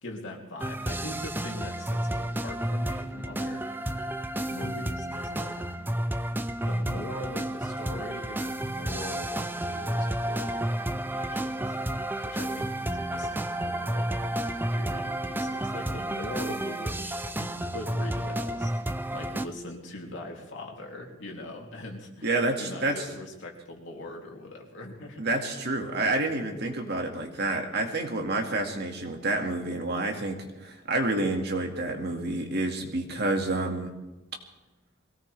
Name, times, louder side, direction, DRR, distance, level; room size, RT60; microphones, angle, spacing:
voice 1, 0.0-3.7 4.5-5.6 6.6-11.8 12.2-14.3 14.7-22.3 22.6-25.3, left 1 dB, 60° left, -1 dB, 3.2 m, -41 dB
sound 1, 0.6-19.5, right 1 dB, 10° right, 0.5 m, -31 dB
voice 2, 22.2-23.0 25.2-33.9, right 2 dB, 50° right, 3 dB, 2.1 m, -29 dB
22.5 x 17.5 x 3.5 m, 1.1 s
head